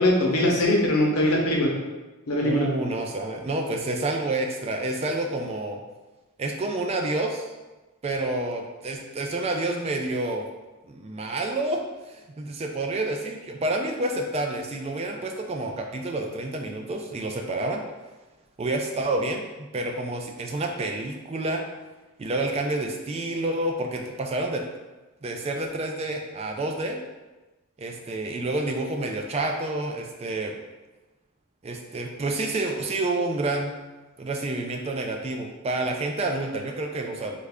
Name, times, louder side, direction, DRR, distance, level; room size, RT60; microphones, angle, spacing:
voice 1, 0.0-1.7 2.3-2.7, left 1 dB, 85° left, -1 dB, 0.8 m, -21 dB
voice 2, 2.4-5.8 6.4-7.5 8.0-10.4 10.9-11.8 12.1-17.8 18.6-21.6 22.2-24.6 25.2-27.0 27.8-30.5 31.6-33.7 34.2-37.4, right 2 dB, 30° right, 3 dB, 0.3 m, -29 dB
3.2 x 2.5 x 3.4 m, 1.1 s
head